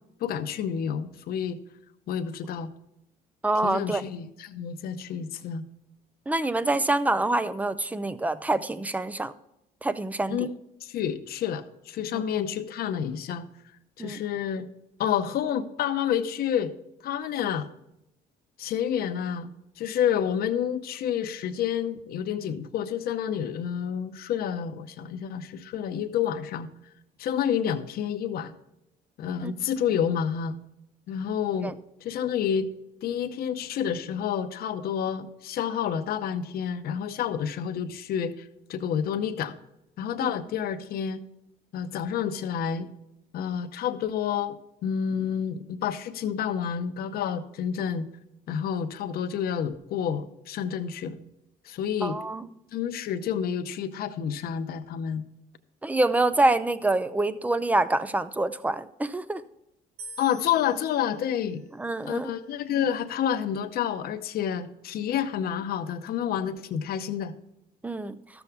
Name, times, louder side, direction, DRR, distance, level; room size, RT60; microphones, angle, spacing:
voice 1, 0.2-1.6 2.1-2.7 3.6-5.6 10.3-10.5 10.8-13.5 14.0-14.7 15.0-16.7 17.0-17.7 18.6-19.5 19.8-26.7 27.2-28.5 29.2-30.6 31.1-31.7 32.0-32.7 33.0-39.5 40.0-41.2 41.7-42.9 43.3-48.1 48.5-51.2 51.6-52.2 52.7-55.2 60.2-61.6 62.0-67.3, left 8 dB, 65° left, 9 dB, 0.8 m, -29 dB
voice 2, 3.4-4.0 6.3-9.3 9.8-10.4 12.1-12.2 14.0-14.2 29.4-29.6 31.6-31.7 40.2-40.3 52.0-52.5 55.8-59.4 61.8-62.3 67.8-68.2, right 2 dB, 10° right, 15 dB, 0.5 m, -26 dB
sound 1, 60.0-63.2, right 3 dB, 75° right, 1.0 m, -49 dB
13.0 x 7.0 x 3.5 m, 0.86 s
cardioid pair, 110°, 17 cm